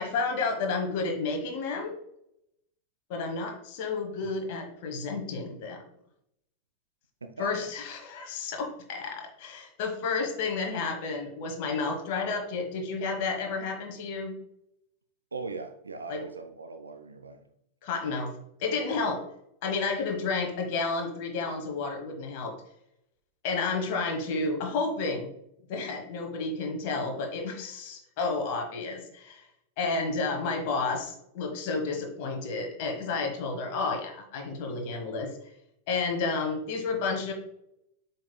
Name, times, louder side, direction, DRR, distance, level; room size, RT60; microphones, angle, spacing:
voice 1, 0.0-2.0 3.1-5.8 7.4-14.4 16.1-16.2 17.8-18.3 18.6-19.2 19.6-22.5 23.4-25.3 25.7-29.5 29.8-35.3 35.9-37.3, left 4 dB, 50° left, 4 dB, 1.2 m, -31 dB
voice 2, 7.2-7.7 15.3-17.5, right 3 dB, 75° right, 7 dB, 0.5 m, -40 dB
7.7 x 5.5 x 2.2 m, 0.76 s
figure-of-eight pair, 90°, 0 cm